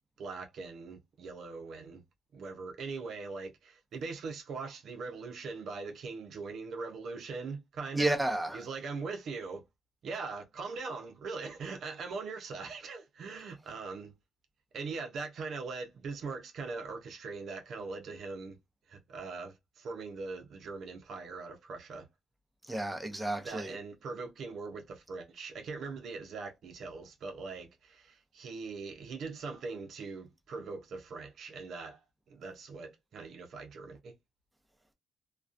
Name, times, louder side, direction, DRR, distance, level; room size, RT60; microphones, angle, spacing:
voice 1, 0.2-2.0 2.3-8.2 8.5-9.6 10.0-14.1 14.7-18.6 18.9-22.1 23.4-32.0 32.3-34.1, right 4 dB, 65° right, 0.6 m, -41 dB
voice 2, 7.9-8.7 22.7-23.7, right 1 dB, 10° right, 0.7 m, -31 dB
2.3 x 2.2 x 2.4 m
cardioid pair, 90°, 0 cm